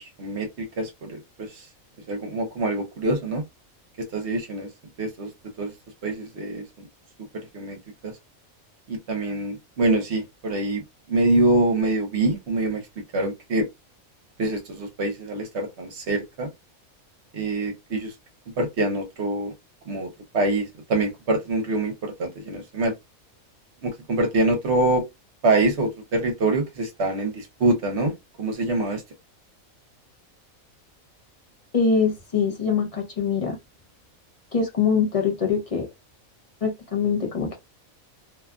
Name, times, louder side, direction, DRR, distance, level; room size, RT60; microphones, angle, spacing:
voice 1, 0.0-1.7 2.1-3.4 4.0-4.7 5.0-5.3 5.6-5.7 6.0-6.9 7.5-7.8 8.0-8.1 8.9-12.8 13.1-13.7 14.4-16.5 17.3-18.1 18.6-19.5 19.9-20.1 20.3-22.9 23.8-25.0 25.4-28.1 28.4-29.0, right 2 dB, 60° right, 0.9 m, -25 dB
voice 2, 31.7-33.6 34.5-35.9 36.6-37.6, left 5 dB, 40° left, 0.5 m, -23 dB
2.7 x 2.3 x 2.3 m
omnidirectional pair, 1.4 m